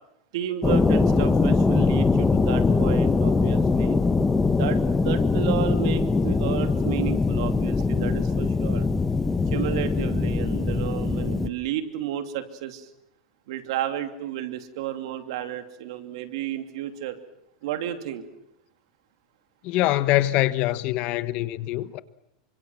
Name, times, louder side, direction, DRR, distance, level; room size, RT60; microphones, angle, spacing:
voice 1, 0.3-4.0 4.6-8.9 9.5-12.9 13.5-17.2 17.6-18.2, right 11 dB, 70° right, 2.9 m, -32 dB
sound 1, 0.6-11.5, left 4 dB, 10° left, 1.0 m, -22 dB
voice 2, 19.6-22.0, left 16 dB, 45° left, 1.2 m, -24 dB
28.5 x 25.0 x 6.2 m
supercardioid pair, 150°, 3 cm